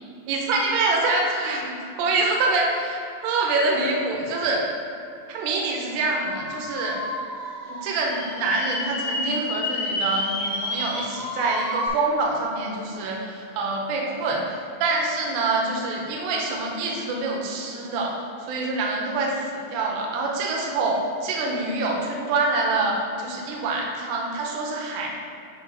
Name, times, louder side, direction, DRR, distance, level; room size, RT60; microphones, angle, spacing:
voice 1, 0.3-3.0 3.2-4.6 5.3-7.0 7.6-19.3 19.7-25.1, right 3 dB, 75° right, -1 dB, 2.6 m, -25 dB
sound 1, 6.3-11.9, left 2 dB, 60° left, 2.4 m, -30 dB
7.7 x 2.8 x 5.5 m, 2.6 s
omnidirectional pair, 5.5 m